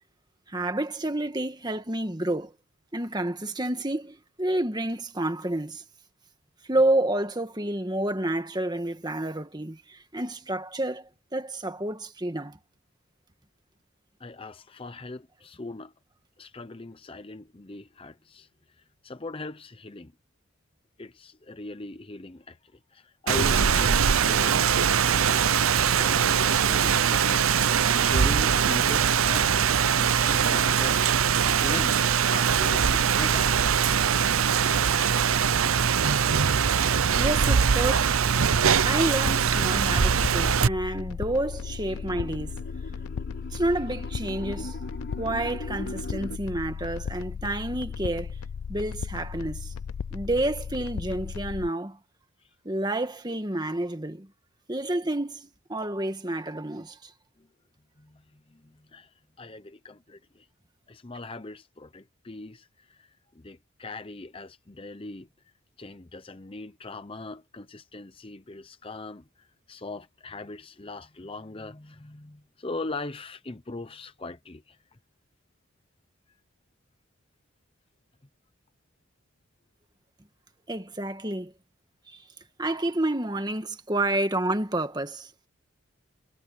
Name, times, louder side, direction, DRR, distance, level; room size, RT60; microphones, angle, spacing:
voice 1, 0.5-2.5 2.9-5.8 6.7-12.6 37.1-38.2 38.8-42.6 43.5-44.8 45.2-48.3 48.7-49.7 50.1-52.0 52.6-54.3 54.7-57.1 80.7-81.5 82.1-82.2 82.6-85.3, right 1 dB, 20° right, 1.6 m, -29 dB
voice 2, 14.2-15.9 16.4-20.1 21.0-25.6 26.0-27.7 28.0-29.7 29.9-31.2 31.6-33.8 43.0-43.2 57.4-57.5 58.0-60.5 60.9-65.3 65.8-74.8, left 2 dB, 25° left, 0.7 m, -40 dB
Rain, 23.3-40.7, right 7 dB, 75° right, 0.7 m, -22 dB
sound 1, 38.3-51.7, left 6 dB, 75° left, 0.4 m, -36 dB
sound 2, 41.2-46.4, left 1 dB, 55° left, 6.9 m, -40 dB
head